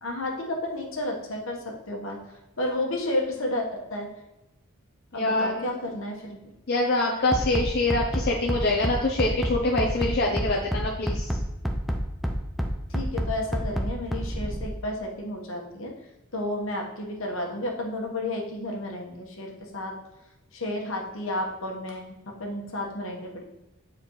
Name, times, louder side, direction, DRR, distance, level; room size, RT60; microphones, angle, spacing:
voice 1, 0.0-2.2 2.6-4.1 5.1-6.4 12.9-15.9 16.3-19.9 20.5-23.4, left 1 dB, 70° left, 0 dB, 1.2 m, -32 dB
voice 2, 5.1-5.7 6.7-11.4, left 2 dB, 50° left, -2 dB, 0.6 m, -25 dB
Bass drum, 7.3-14.7, equal, ahead, 0.4 m, -27 dB
7.7 x 4.4 x 3.1 m, 0.99 s
head